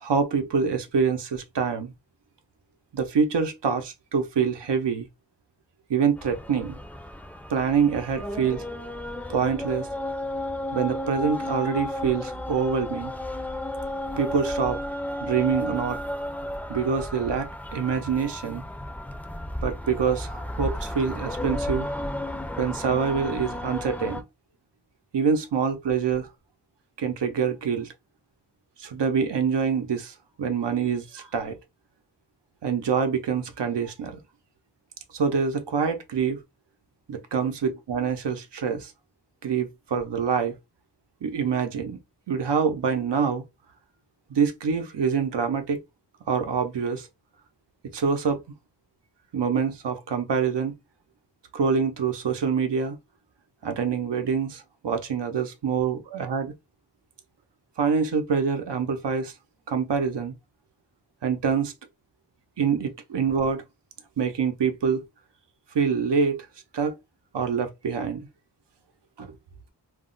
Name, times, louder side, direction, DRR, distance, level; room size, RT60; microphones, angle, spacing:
voice 1, 0.0-1.9 2.9-5.1 5.9-6.8 7.5-8.6 9.3-9.9 10.7-13.1 14.2-14.8 15.2-16.0 16.7-18.6 19.6-21.9 22.6-24.2 25.1-26.3 27.0-27.9 28.8-31.6 32.6-34.2 35.1-36.4 37.1-38.9 39.4-40.5 41.2-42.0 42.3-43.4 44.3-45.8 46.3-47.1 47.9-48.4 49.3-50.8 51.5-53.0 53.6-56.5 57.8-59.3 59.7-60.3 61.2-61.7 62.6-63.6 64.2-65.0 65.7-66.5 66.7-67.0 67.3-68.3 69.2-69.3, right 6 dB, 85° right, 0.7 m, -25 dB
sound 1, 6.2-24.2, left 1 dB, 5° left, 0.4 m, -33 dB
2.4 x 2.0 x 3.8 m
wide cardioid pair, 50°, 41 cm